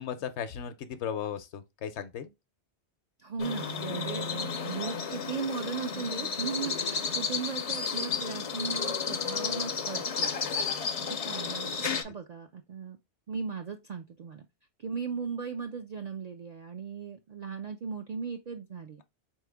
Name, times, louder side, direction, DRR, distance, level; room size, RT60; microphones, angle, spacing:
voice 1, 0.0-2.3, left 8 dB, 80° left, 0.9 m, -36 dB
voice 2, 3.2-10.3 11.0-13.0 13.3-14.5 14.8-19.0, right 6 dB, 65° right, 0.4 m, -37 dB
sound 1, 3.4-12.0, left 5 dB, 50° left, 0.4 m, -32 dB
4.0 x 3.1 x 3.4 m
omnidirectional pair, 1.2 m